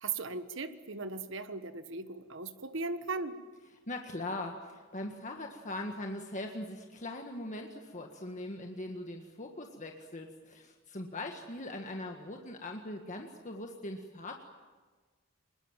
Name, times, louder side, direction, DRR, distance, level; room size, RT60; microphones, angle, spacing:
voice 1, 0.0-3.4, right 4 dB, 65° right, 10 dB, 1.4 m, -38 dB
voice 2, 3.9-14.4, left 1 dB, 35° left, 3 dB, 1.7 m, -41 dB
24.5 x 21.5 x 9.0 m, 1.4 s
head